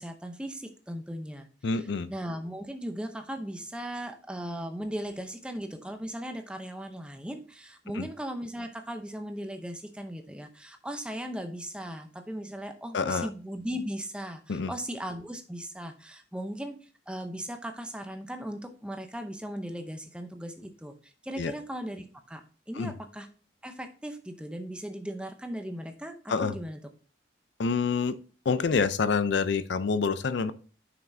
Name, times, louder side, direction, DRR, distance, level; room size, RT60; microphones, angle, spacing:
voice 1, 0.0-23.3 23.6-26.8, equal, 5° right, 6 dB, 0.6 m, -38 dB
voice 2, 1.6-2.1 8.0-8.1 12.9-13.3 14.5-14.7 21.4-21.5 22.8-22.9 26.3-26.5 27.6-28.2 28.5-30.5, left 5 dB, 65° left, 13 dB, 0.5 m, -27 dB
7.4 x 5.9 x 2.6 m, 0.38 s
head